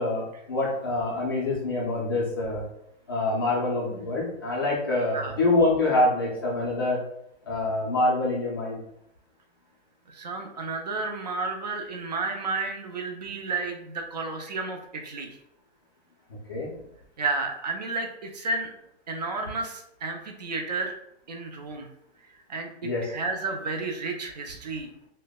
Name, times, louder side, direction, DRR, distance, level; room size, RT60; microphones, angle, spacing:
voice 1, 0.0-2.6 3.1-7.0 7.4-8.8 16.5-16.7 22.8-23.1, left 2 dB, 20° left, -4 dB, 0.4 m, -25 dB
voice 2, 10.1-15.3 17.2-18.7 19.1-20.9 21.3-21.9 22.5-22.7 23.0-24.9, right 3 dB, 40° right, 3 dB, 0.5 m, -32 dB
6.3 x 2.1 x 2.2 m, 0.76 s
hypercardioid pair, 170°, 33 cm